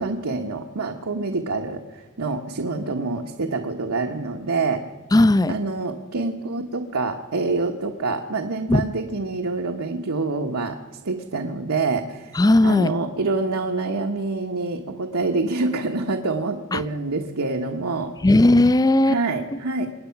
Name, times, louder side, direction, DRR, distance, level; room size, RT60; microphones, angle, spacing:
voice 1, 0.0-4.8 5.5-10.8 11.0-12.3 12.6-18.1 19.1-19.9, right 3 dB, 80° right, 2 dB, 1.2 m, -26 dB
voice 2, 5.1-5.6 8.7-8.9 12.3-12.9 16.7-16.8 18.2-19.2, left 1 dB, 15° left, 18 dB, 0.4 m, -16 dB
25.0 x 9.8 x 5.8 m, 1.4 s
head